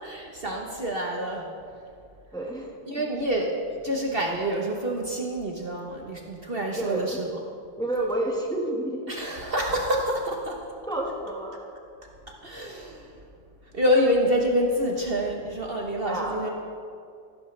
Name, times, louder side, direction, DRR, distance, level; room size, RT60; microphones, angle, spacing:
voice 1, 0.0-1.9 2.9-7.4 9.1-10.7 12.0-13.3 13.6-16.5, equal, 45° right, 0 dB, 0.7 m, -27 dB
voice 2, 2.3-3.0 6.7-7.2 7.8-9.1 10.9-11.7 16.0-16.5, right 1 dB, 5° left, -2 dB, 0.9 m, -30 dB
14.5 x 12.5 x 3.2 m, 2.4 s
omnidirectional pair, 2.4 m